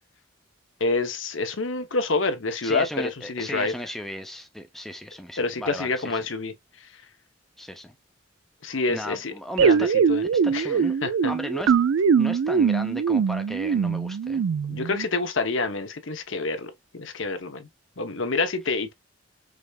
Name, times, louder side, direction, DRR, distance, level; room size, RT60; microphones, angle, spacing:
voice 1, 0.8-3.7 5.4-7.0 8.6-9.3 9.6-10.2 10.5-10.7 11.0-11.3 14.7-17.7 18.0-18.9, left 3 dB, 70° left, 0.9 m, -27 dB
voice 2, 2.6-6.0 7.6-7.9 8.9-9.9 10.4-11.0 11.3-11.7 12.2-14.4, equal, ahead, 0.6 m, -35 dB
sound 1, 9.6-15.1, right 6 dB, 80° right, 0.4 m, -22 dB
4.9 x 3.4 x 2.3 m
head